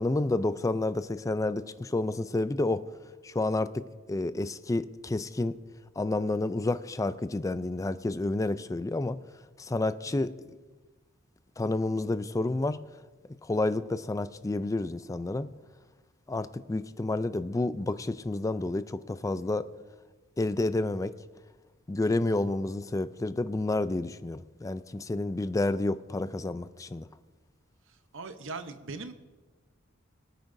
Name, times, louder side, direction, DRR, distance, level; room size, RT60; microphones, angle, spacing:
voice 1, 0.0-2.8 3.2-3.8 4.1-5.5 6.0-9.2 9.6-10.3 11.6-12.8 13.5-15.5 16.3-19.6 20.4-21.1 21.9-27.1, left 2 dB, 15° left, 13 dB, 0.4 m, -29 dB
voice 2, 28.1-29.1, right 3 dB, 65° right, 9 dB, 0.8 m, -40 dB
23.5 x 9.1 x 2.6 m, 1.3 s
head